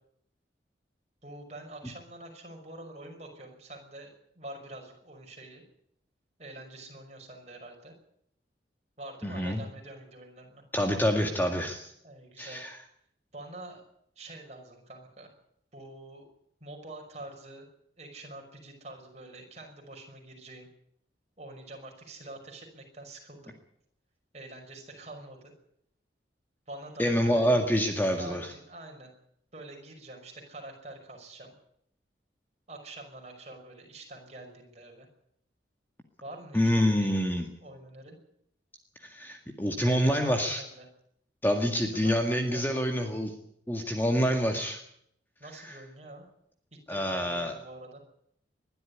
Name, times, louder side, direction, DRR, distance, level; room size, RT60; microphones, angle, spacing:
voice 1, 1.2-5.6 6.4-7.9 9.0-10.6 12.0-12.6 13.3-13.8 14.2-15.3 15.7-16.2 16.6-17.7 18.0-20.7 21.4-23.5 24.3-25.5 26.7-27.5 28.0-29.1 29.5-31.5 32.7-35.1 36.2-37.1 37.6-38.2 39.8-40.9 41.6-42.2 42.5-42.9 45.4-46.3 46.7-48.0, right 2 dB, 35° right, 2 dB, 5.7 m, -46 dB
voice 2, 9.2-9.6 10.7-11.9 12.4-12.8 27.0-28.5 36.5-37.5 39.0-40.6 41.4-43.3 43.7-44.8 45.6-45.8 46.9-47.5, equal, 10° left, 3 dB, 1.9 m, -27 dB
21.0 x 12.5 x 9.9 m, 0.70 s
head